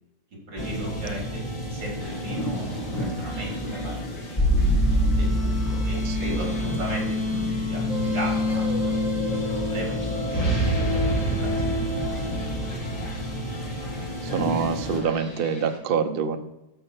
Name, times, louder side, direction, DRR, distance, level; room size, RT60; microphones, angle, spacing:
voice 1, 0.5-1.4 1.7-4.4 5.2-8.8 9.3-9.4 9.7-10.7 11.1-11.5 11.8-12.8, right 1 dB, 80° right, -3 dB, 4.6 m, -37 dB
sound 1, 0.6-15.0, equal, 20° left, 1.8 m, -26 dB
sound 2, 2.0-15.8, left 2 dB, 55° left, 3.8 m, -46 dB
voice 2, 5.9-6.8 14.2-16.4, right 6 dB, 60° right, 8 dB, 0.6 m, -27 dB
13.0 x 5.4 x 4.5 m, 0.94 s
omnidirectional pair, 2.0 m